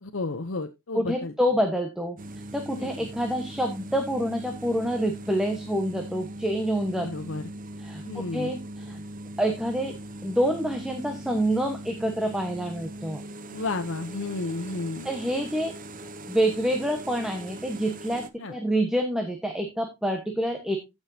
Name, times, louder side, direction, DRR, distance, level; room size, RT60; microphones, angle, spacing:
voice 1, 0.0-1.3 2.7-3.1 7.0-7.5 8.0-8.5 13.5-15.1 18.4-18.5, left 3 dB, 65° left, 7 dB, 0.8 m, -32 dB
voice 2, 0.9-2.2 2.5-7.1 7.8-9.0 9.4-9.9 10.2-13.2 15.0-15.7 16.3-20.8, equal, 5° right, 4 dB, 1.2 m, -27 dB
sound 1, 2.2-18.3, right 1 dB, 40° right, 0.8 m, -40 dB
15.0 x 6.3 x 2.7 m, 0.23 s
head